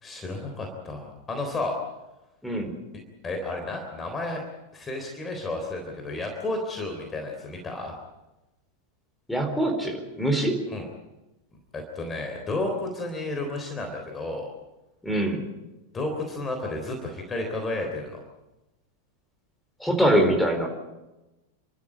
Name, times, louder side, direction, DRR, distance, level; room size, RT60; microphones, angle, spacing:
voice 1, 0.0-1.8 3.2-4.4 4.7-7.9 10.7-10.9 11.7-14.5 15.9-18.2, left 2 dB, 20° left, 3 dB, 3.6 m, -32 dB
voice 2, 2.4-2.7 9.3-10.6 15.0-15.4 19.8-20.7, right 1 dB, 5° left, 3 dB, 4.4 m, -23 dB
29.5 x 13.0 x 8.6 m, 1.0 s
figure-of-eight pair, 90°, 0 cm